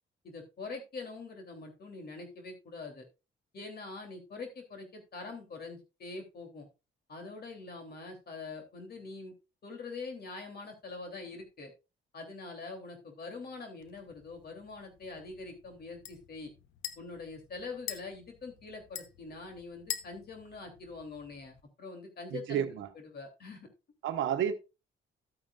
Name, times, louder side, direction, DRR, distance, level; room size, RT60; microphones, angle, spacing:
voice 1, 0.2-3.1 3.5-6.7 7.1-9.3 9.6-11.7 12.1-16.5 17.0-22.7 23.1-23.7, left 3 dB, 50° left, 3.1 m, -44 dB
sound 1, 13.8-21.6, left 10 dB, 80° left, 1.0 m, -46 dB
voice 2, 22.3-22.9 24.0-24.5, right 9 dB, 75° right, 1.0 m, -31 dB
13.0 x 8.9 x 2.4 m
cardioid pair, 90°, 20 cm